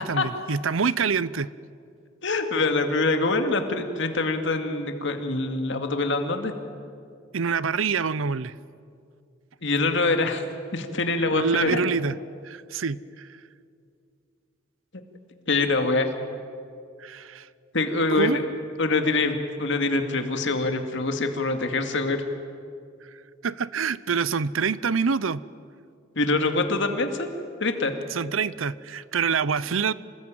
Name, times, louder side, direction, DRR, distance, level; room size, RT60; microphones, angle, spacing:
voice 1, 0.0-1.5 7.3-8.5 11.3-12.1 12.4-13.3 17.0-17.5 18.1-18.4 23.4-25.4 28.1-29.9, right 5 dB, 85° right, 19 dB, 0.7 m, -26 dB
voice 2, 2.2-6.5 9.6-10.4 10.7-11.8 15.5-16.1 17.7-18.4 18.8-22.2 26.2-27.3 27.6-27.9, left 3 dB, 65° left, 6 dB, 2.2 m, -24 dB
26.5 x 19.5 x 9.1 m, 2.4 s
head